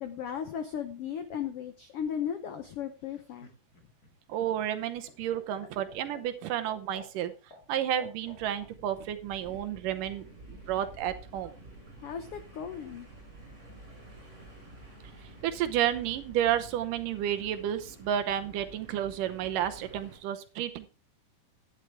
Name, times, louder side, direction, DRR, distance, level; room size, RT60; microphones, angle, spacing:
voice 1, 0.0-3.5 12.0-13.1, left 8 dB, 85° left, 8 dB, 1.3 m, -36 dB
Laughter, 3.0-8.7 10.0-10.6, left 2 dB, 30° left, 2.1 m, -52 dB
voice 2, 4.3-7.3 7.7-11.5 15.4-20.9, right 11 dB, 80° right, 9 dB, 2.4 m, -31 dB
sound 1, 8.2-20.2, right 2 dB, 20° right, 6.2 m, -50 dB
12.0 x 10.5 x 3.4 m, 0.32 s
omnidirectional pair, 3.9 m